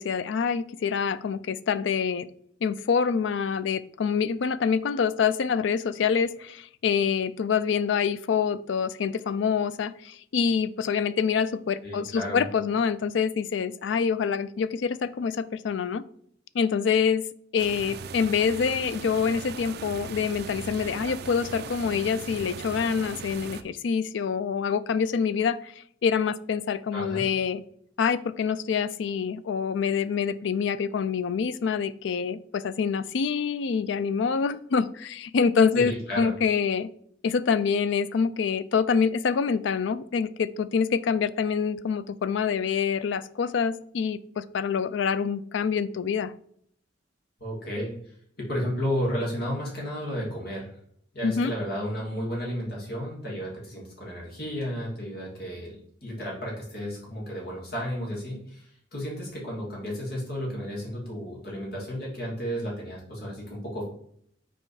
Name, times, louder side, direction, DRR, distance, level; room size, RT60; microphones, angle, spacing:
voice 1, 0.0-2.3 2.6-16.0 16.5-17.2 17.5-27.6 28.0-36.9 37.2-46.3 51.2-51.5, left 6 dB, 75° left, 16 dB, 0.4 m, -26 dB
voice 2, 11.8-12.4 26.9-27.2 35.7-36.3 47.4-47.9 48.4-50.7 51.1-55.8 56.0-63.8, equal, 55° left, -3 dB, 2.5 m, -32 dB
sound 1, 17.6-23.6, right 5 dB, 55° right, 0.4 m, -39 dB
5.4 x 4.3 x 4.8 m, 0.65 s
head